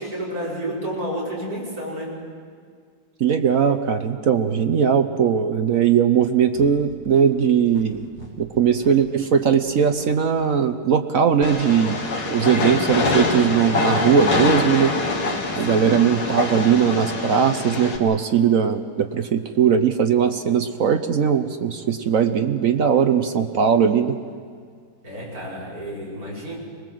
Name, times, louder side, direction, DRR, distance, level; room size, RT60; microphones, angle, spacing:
voice 1, 0.0-2.2 15.6-16.0 25.0-26.6, right 1 dB, 40° right, -4 dB, 5.7 m, -30 dB
voice 2, 3.2-8.0 8.4-12.0 12.3-14.9 15.6-24.1, right 7 dB, 65° right, 8 dB, 0.8 m, -19 dB
sound 1, 6.5-10.1, right 1 dB, 20° right, 4.1 m, -42 dB
Train, 11.4-18.0, left 3 dB, 75° left, 2.9 m, -24 dB
25.0 x 20.0 x 7.7 m, 2.1 s
omnidirectional pair, 2.4 m